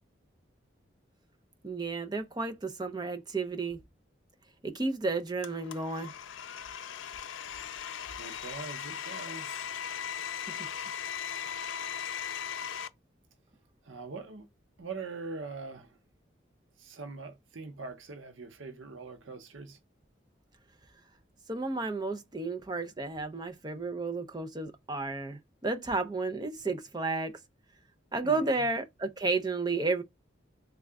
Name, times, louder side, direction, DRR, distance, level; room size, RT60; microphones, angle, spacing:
voice 1, 1.6-3.8 4.6-6.1 21.5-27.4 28.1-30.0, right 3 dB, 20° right, 0.5 m, -32 dB
Domestic sounds home sounds, 5.4-12.9, left 8 dB, 85° left, 0.4 m, -38 dB
voice 2, 8.2-9.7 13.8-14.5 14.8-16.0 16.8-19.8 28.2-28.7, right 4 dB, 90° right, 0.8 m, -43 dB
3.7 x 2.3 x 3.3 m
head